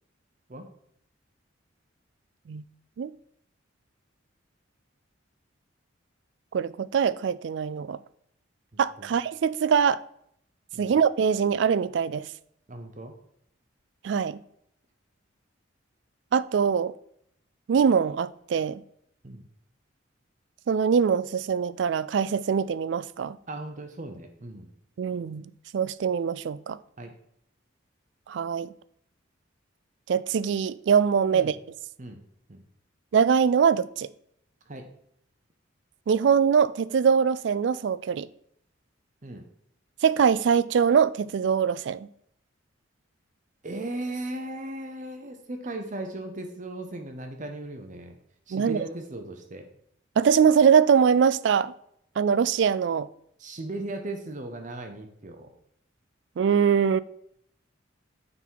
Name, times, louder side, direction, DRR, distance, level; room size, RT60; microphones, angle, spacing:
voice 1, 6.5-8.0 8.8-10.0 10.8-12.3 14.0-14.4 16.3-16.9 17.7-18.8 20.7-23.4 25.0-25.4 25.7-26.8 28.3-28.7 30.1-31.6 33.1-34.1 36.1-38.3 40.0-42.1 48.5-48.8 50.2-51.7 52.2-53.1 56.4-57.0, right 7 dB, 60° right, 0.3 m, -23 dB
voice 2, 8.7-9.1 10.7-11.0 12.7-13.1 19.2-19.4 23.5-24.7 27.0-27.1 31.3-31.5 32.0-32.2 32.5-32.6 34.7-34.9 39.2-39.4 43.6-48.1 48.5-49.7 53.4-55.5, right 2 dB, 40° right, 0.8 m, -37 dB
9.0 x 4.0 x 4.6 m
head